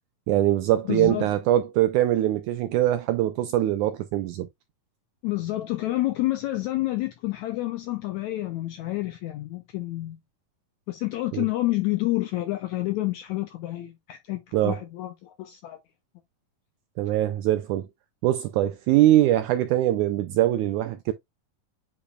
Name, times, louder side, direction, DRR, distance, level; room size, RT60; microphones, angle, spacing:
voice 1, 0.3-4.5 11.3-11.5 14.5-14.8 17.0-17.9 18.2-21.1, right 13 dB, 85° right, 1.7 m, -22 dB
voice 2, 0.9-1.3 5.2-10.2 10.9-15.8, left 17 dB, 80° left, 1.7 m, -29 dB
8.3 x 5.0 x 2.3 m
omnidirectional pair, 4.0 m